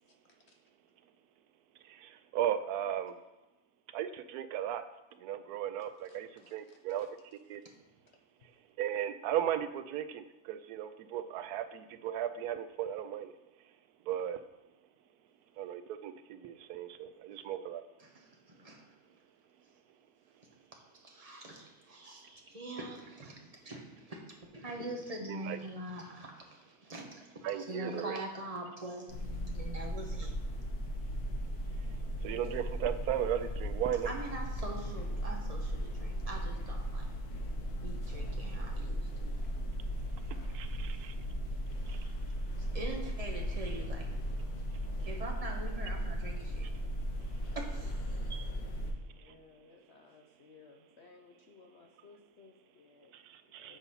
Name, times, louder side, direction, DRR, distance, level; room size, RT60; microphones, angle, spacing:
voice 1, 0.1-0.6 6.1-7.1 49.0-53.1 53.5-53.8, left 4 dB, 60° left, 3 dB, 0.8 m, -60 dB
voice 2, 1.8-3.1 3.9-4.9 5.2-7.1 7.3-7.6 8.8-13.3 14.1-14.4 15.6-17.8 25.3-25.6 27.4-28.2 32.2-34.1 40.3-41.2 41.9-42.1 49.2-49.3 53.1-53.8, right 10 dB, 85° right, 11 dB, 1.1 m, -36 dB
voice 3, 18.0-18.9 20.9-24.2 24.5-30.3 34.0-37.0 37.8-39.3 41.9-42.1 42.6-44.1 45.1-46.7 47.5-48.0 48.3-48.5, right 1 dB, 25° right, 0 dB, 1.1 m, -44 dB
sound 1, 29.1-48.9, equal, 85° left, 1.5 m, -37 dB
8.0 x 4.1 x 5.5 m, 1.1 s
omnidirectional pair, 1.6 m